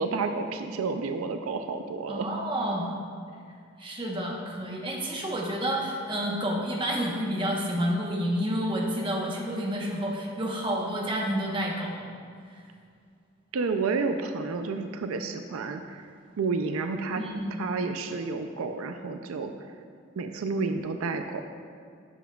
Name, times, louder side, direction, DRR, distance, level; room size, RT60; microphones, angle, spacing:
voice 1, 0.0-2.3 13.5-16.1 16.4-17.2 17.6-19.5 20.2-21.4, right 4 dB, 85° right, 6 dB, 0.4 m, -30 dB
voice 2, 2.1-3.0 3.8-12.1 12.5-12.6 17.2-17.6, equal, 25° right, -2 dB, 1.0 m, -29 dB
12.0 x 7.1 x 2.3 m, 2.3 s
head